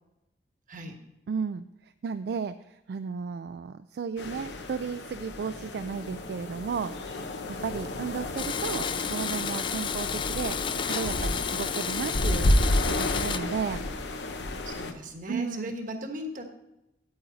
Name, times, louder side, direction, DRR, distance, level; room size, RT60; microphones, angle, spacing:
voice 1, 1.3-13.8 15.3-15.7, right 6 dB, 65° right, 11 dB, 0.3 m, -34 dB
sound 1, 4.2-14.9, left 1 dB, 85° left, 0.9 m, -31 dB
Domestic sounds home sounds, 8.4-13.4, left 7 dB, 30° left, 0.3 m, -32 dB
voice 2, 14.6-16.4, equal, 50° right, 4 dB, 1.3 m, -37 dB
9.0 x 8.7 x 4.0 m, 0.92 s
head